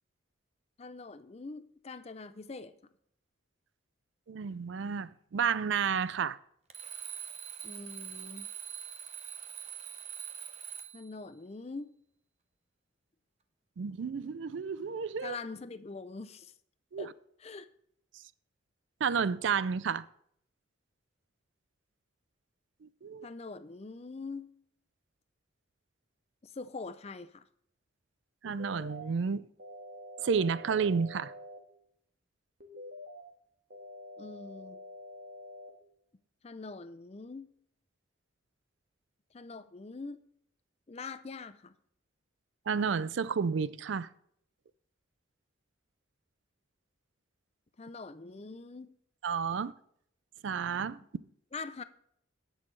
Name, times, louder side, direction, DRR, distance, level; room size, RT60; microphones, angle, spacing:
voice 1, 0.8-2.7 7.6-8.5 10.9-11.9 15.2-16.5 17.0-17.1 17.4-17.7 23.2-24.5 26.4-27.4 34.2-34.8 36.4-37.5 39.3-40.3 40.9-41.7 47.8-48.9 51.5-51.8, left 4 dB, 30° left, 0.5 m, -43 dB
voice 2, 4.3-6.4 13.8-15.3 16.9-17.1 19.0-20.1 22.8-23.3 28.4-29.5 30.2-31.3 42.7-44.1 49.2-49.7 50.4-51.0, right 6 dB, 70° right, 0.4 m, -31 dB
Alarm, 6.7-11.1, right 9 dB, 35° right, 0.8 m, -43 dB
sound 1, 28.4-29.0 29.6-31.6 32.6-33.2 33.7-35.7, left 1 dB, 50° right, 1.7 m, -47 dB
17.5 x 6.3 x 3.2 m
head